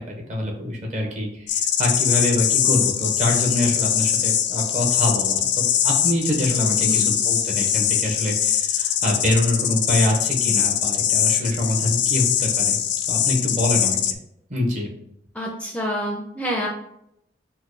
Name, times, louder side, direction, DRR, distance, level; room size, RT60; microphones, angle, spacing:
voice 1, 0.1-12.8 13.1-14.0 14.5-14.9, left 1 dB, 45° right, 0 dB, 1.0 m, -25 dB
sound 1, 1.5-14.1, left 9 dB, 85° left, 0.4 m, -22 dB
voice 2, 6.8-7.1 15.3-16.7, equal, 5° left, -1 dB, 0.5 m, -28 dB
4.4 x 2.2 x 4.6 m, 0.76 s
head